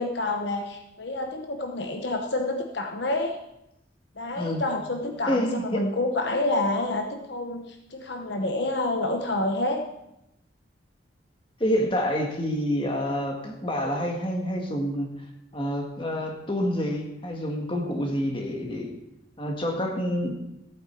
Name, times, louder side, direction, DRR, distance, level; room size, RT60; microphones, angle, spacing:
voice 1, 0.0-3.4 4.2-9.8, left 2 dB, 65° left, 4 dB, 0.9 m, -28 dB
voice 2, 5.3-5.8 11.6-15.1 15.5-18.9 19.4-20.3, equal, 25° left, 2 dB, 1.7 m, -27 dB
15.0 x 8.6 x 4.5 m, 0.85 s
head